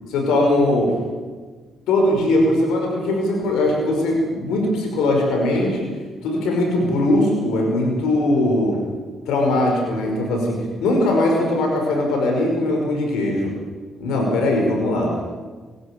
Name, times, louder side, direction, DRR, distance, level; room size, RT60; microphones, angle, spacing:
voice 1, 0.1-1.0 1.9-5.9 6.2-8.8 9.3-13.5 14.0-15.2, left 1 dB, 90° left, 1 dB, 5.3 m, -20 dB
25.0 x 12.5 x 9.0 m, 1.5 s
cardioid pair, 90°, 0 cm